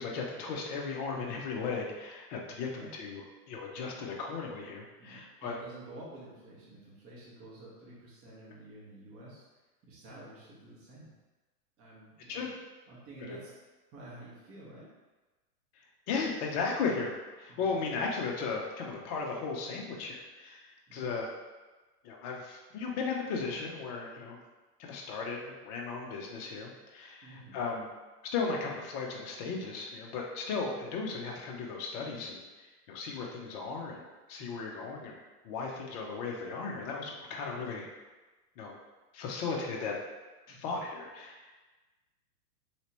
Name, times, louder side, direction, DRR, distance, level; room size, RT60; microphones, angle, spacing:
voice 1, 0.0-3.2 3.5-5.5 12.3-12.5 13.3-13.4 16.1-17.1 17.4-21.3 22.0-24.4 24.8-27.9 28.3-32.4 32.9-34.0 34.3-35.2 35.4-37.8 38.6-38.7 39.1-39.9 40.5-41.5, left 4 dB, 25° left, 0 dB, 0.5 m, -36 dB
voice 2, 5.0-9.4 9.8-11.1 11.8-12.4 12.9-13.5 13.9-14.9 17.5-17.7 20.9-21.1 27.2-27.6 37.5-37.8 40.5-40.7, right 1 dB, 30° right, -7 dB, 1.4 m, -50 dB
3.4 x 2.9 x 2.9 m, 1.2 s
hypercardioid pair, 120°, 47 cm